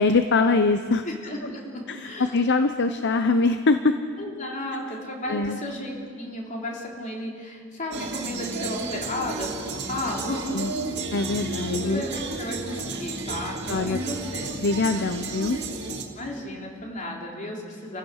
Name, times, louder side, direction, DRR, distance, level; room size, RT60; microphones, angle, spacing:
voice 1, 0.0-1.0 1.9-3.9 5.3-5.6 10.5-10.7 11.1-12.0 13.7-14.0 14.6-15.6, left 3 dB, 55° left, 9 dB, 0.7 m, -23 dB
voice 2, 1.0-2.4 4.2-10.7 11.3-11.5 11.8-14.5 16.1-18.0, left 1 dB, 40° left, -1 dB, 3.5 m, -34 dB
sound 1, 7.9-16.0, right 3 dB, 55° right, 2.4 m, -32 dB
29.0 x 15.5 x 6.4 m, 2.2 s
head